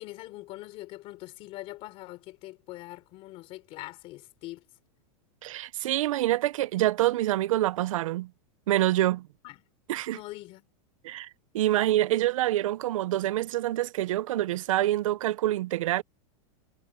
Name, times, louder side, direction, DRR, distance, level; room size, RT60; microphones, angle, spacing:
voice 1, 0.0-4.6 9.4-9.6 10.1-10.7, left 18 dB, 35° left, 4.0 m, -43 dB
voice 2, 5.4-8.3 8.7-9.3 9.9-10.2 11.0-11.3 11.5-16.0, right 14 dB, 80° right, 0.7 m, -26 dB
supercardioid pair, 165°, 17 cm